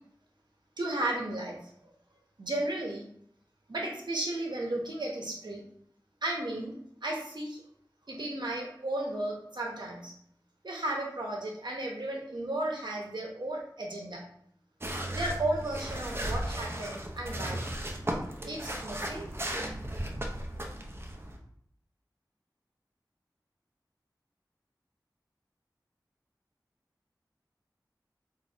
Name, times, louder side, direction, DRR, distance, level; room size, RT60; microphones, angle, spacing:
voice 1, 0.8-1.9 2.4-3.0 3.7-5.6 6.2-6.7 7.0-7.6 8.1-10.1 10.6-14.2 15.1-17.7 18.4-19.4, right 1 dB, 75° right, -1 dB, 0.9 m, -34 dB
sound 1, 14.8-21.4, right 1 dB, 30° right, 0.6 m, -35 dB
3.5 x 2.6 x 4.0 m, 0.67 s
wide cardioid pair, 55°, 8 cm